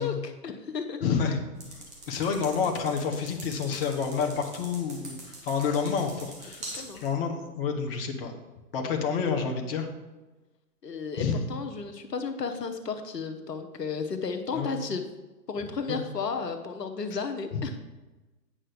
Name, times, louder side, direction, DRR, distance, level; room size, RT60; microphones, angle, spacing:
voice 1, 0.0-1.1 6.7-7.0 10.8-15.1 15.5-17.8, left 5 dB, 75° left, 7 dB, 1.0 m, -33 dB
voice 2, 1.0-1.4 1.7-5.2 5.4-8.3 8.7-9.9 11.2-11.4 14.6-14.8 15.9-16.0 17.5-17.6, left 6 dB, 35° left, 4 dB, 1.2 m, -29 dB
sound 1, 1.6-7.1, right 2 dB, 15° right, 1.4 m, -44 dB
8.8 x 5.6 x 5.1 m, 1.2 s
figure-of-eight pair, 130°, 49 cm